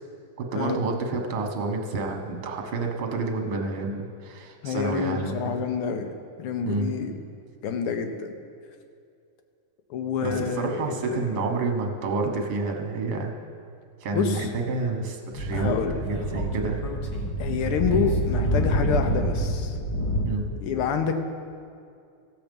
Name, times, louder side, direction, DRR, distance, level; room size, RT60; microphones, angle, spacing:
voice 1, 0.4-5.7 6.7-6.9 10.2-13.3 14.0-15.7 16.0-16.8 20.2-20.5, right 3 dB, 55° right, 3 dB, 1.6 m, -29 dB
voice 2, 4.6-7.1 7.6-8.3 9.9-11.4 14.1-14.5 15.5-16.0 17.4-19.8 20.6-21.1, left 6 dB, 85° left, 6 dB, 1.8 m, -28 dB
Speech / Wind, 15.3-20.3, equal, 65° left, 0.3 m, -26 dB
15.5 x 7.1 x 5.3 m, 2.3 s
omnidirectional pair, 2.4 m